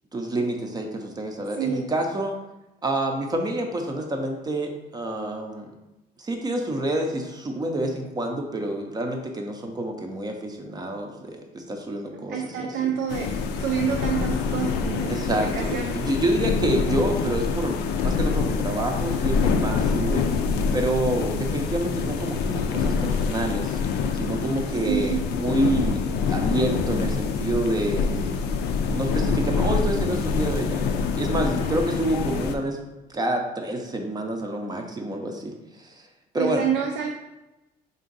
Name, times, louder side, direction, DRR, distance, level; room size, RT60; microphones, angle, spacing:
voice 1, 0.1-2.3 2.8-5.7 6.2-12.9 15.1-20.3 20.7-23.8 24.1-26.0 26.3-28.4 28.9-32.8 33.1-36.0 36.3-36.6, right 1 dB, 25° right, 3 dB, 0.5 m, -28 dB
voice 2, 1.6-1.9 12.3-16.0 21.5-21.6 24.8-25.3 36.4-37.1, right 8 dB, 80° right, 2 dB, 0.4 m, -28 dB
sound 1, 13.1-32.5, left 5 dB, 75° left, 0.4 m, -25 dB
3.6 x 2.6 x 3.9 m, 0.99 s
cardioid pair, 110°, 17 cm